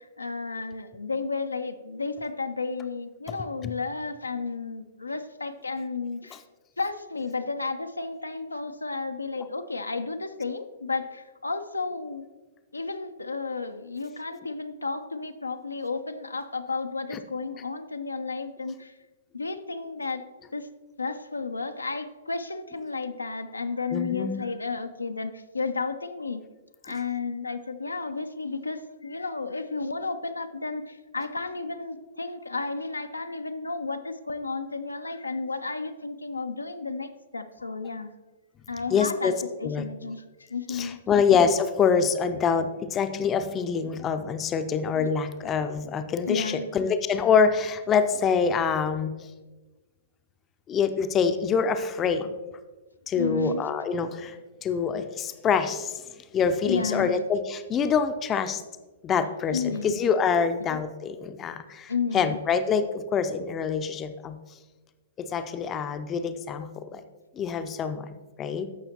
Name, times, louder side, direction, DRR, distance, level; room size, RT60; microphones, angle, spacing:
voice 1, 0.0-6.4 6.8-12.3 12.7-18.9 19.3-20.2 20.5-20.7 21.0-26.4 26.8-38.1 38.7-39.3 39.6-40.2 40.5-41.0 44.9-45.2 46.3-46.7 53.1-53.6 56.7-57.1 59.5-59.9 61.9-62.4, left 4 dB, 80° left, 8 dB, 0.5 m, -32 dB
voice 2, 23.9-24.4 38.9-39.4 39.6-39.8 40.7-49.1 50.7-52.3 53.1-54.4 54.6-56.0 56.3-58.6 59.0-64.4 65.2-67.0 67.4-68.1 68.4-68.7, left 6 dB, 20° left, 9 dB, 0.5 m, -25 dB
13.5 x 5.6 x 2.9 m, 1.2 s
figure-of-eight pair, 110°, 0 cm